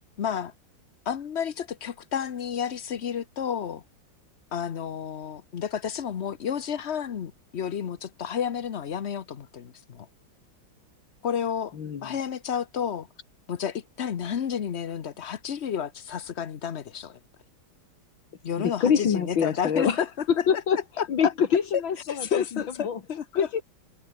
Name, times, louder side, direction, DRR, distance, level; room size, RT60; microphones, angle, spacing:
voice 1, 0.2-0.5 1.1-3.8 4.5-10.1 11.2-11.7 12.0-13.1 13.5-17.2 18.4-20.1 21.0-21.3 22.1-23.5, left 8 dB, 45° left, 0.9 m, -31 dB
voice 2, 11.7-12.1 18.6-20.0 20.3-20.8 21.1-23.0 23.3-23.6, left 7 dB, 70° left, 2.6 m, -25 dB
omnidirectional pair, 2.2 m